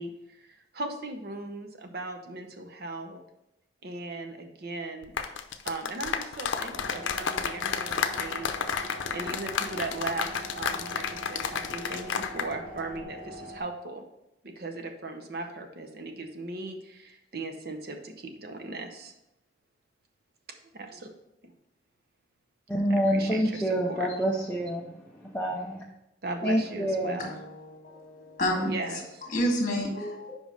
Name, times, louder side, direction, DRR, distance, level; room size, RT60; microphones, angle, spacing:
voice 1, 0.0-3.2 3.8-5.1 5.6-10.3 10.5-14.0 14.4-19.1 20.7-21.1 22.9-24.1 26.2-27.3 28.6-29.2, right 2 dB, 55° right, 5 dB, 0.7 m, -38 dB
sound 1, 5.0-12.5 12.8-13.0, left 6 dB, 90° left, 0.6 m, -31 dB
sound 2, 6.7-13.6, right 1 dB, 30° right, 1.7 m, -43 dB
voice 2, 22.7-25.8 26.4-27.3, equal, 5° left, -3 dB, 0.6 m, -27 dB
voice 3, 27.2-28.7 29.3-30.3, equal, 40° left, 0 dB, 1.7 m, -30 dB
5.2 x 5.1 x 5.1 m, 0.86 s
head